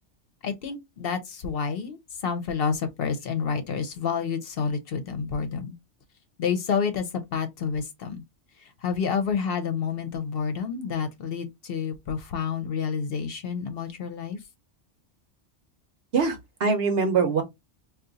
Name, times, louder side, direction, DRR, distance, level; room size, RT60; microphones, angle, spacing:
voice 1, 0.4-5.7 6.4-8.2 8.6-14.4, left 6 dB, 60° left, 0.8 m, -29 dB
voice 2, 16.1-17.4, right 5 dB, 60° right, 0.9 m, -23 dB
2.6 x 2.4 x 3.8 m
omnidirectional pair, 1.2 m